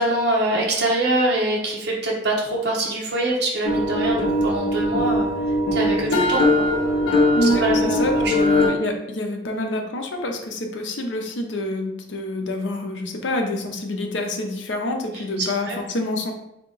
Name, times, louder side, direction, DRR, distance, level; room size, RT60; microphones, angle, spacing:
voice 1, 0.0-5.3 5.7-6.7 7.4-8.3 15.4-15.8, right 1 dB, 60° right, -3 dB, 0.8 m, -24 dB
sound 1, 3.6-8.7, left 1 dB, 55° left, 0.9 m, -20 dB
voice 2, 7.3-16.3, left 1 dB, 75° left, 4 dB, 0.6 m, -27 dB
3.6 x 2.8 x 3.9 m, 0.83 s
head